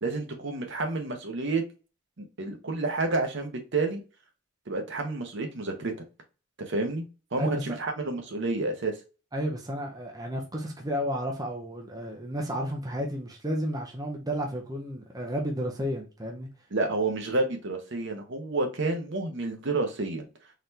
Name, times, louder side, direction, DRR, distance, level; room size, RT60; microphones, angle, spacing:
voice 1, 0.0-1.6 2.2-4.0 4.7-5.9 6.6-7.0 7.3-9.0 16.7-20.2, right 3 dB, 60° right, 0.9 m, -29 dB
voice 2, 9.3-16.5, equal, 20° right, 0.6 m, -32 dB
4.0 x 3.2 x 2.8 m
head